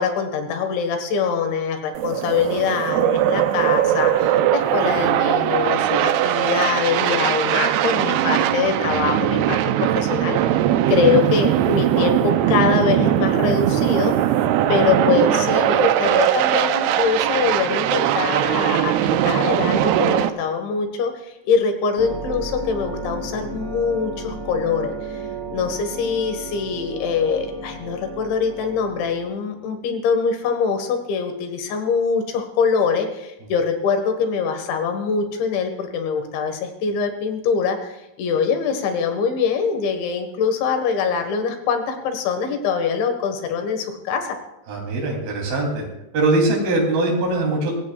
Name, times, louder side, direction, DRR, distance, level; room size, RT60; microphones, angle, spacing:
voice 1, 0.0-9.6 10.0-10.4 10.9-14.1 14.7-25.2 25.5-44.3, left 6 dB, 85° left, 6 dB, 4.0 m, -23 dB
sound 1, 1.9-20.3, right 12 dB, 85° right, 2.3 m, -20 dB
sound 2, 22.0-29.3, right 3 dB, 15° right, 0.8 m, -33 dB
voice 2, 44.7-45.9 46.1-47.7, right 2 dB, 55° right, -1 dB, 4.9 m, -21 dB
23.5 x 18.0 x 2.4 m, 0.87 s
omnidirectional pair, 5.1 m